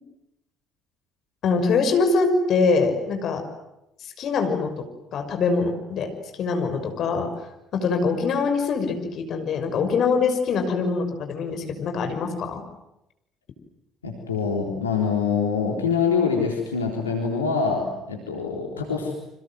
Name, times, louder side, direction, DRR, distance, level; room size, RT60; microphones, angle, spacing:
voice 1, 1.4-3.4 4.0-4.8 5.1-6.1 6.4-7.3 7.7-12.6, left 4 dB, 55° left, 7 dB, 6.2 m, -23 dB
voice 2, 14.0-19.1, left 5 dB, 90° left, 1 dB, 3.7 m, -25 dB
29.5 x 26.0 x 7.8 m, 0.85 s
hypercardioid pair, 55°, 0 cm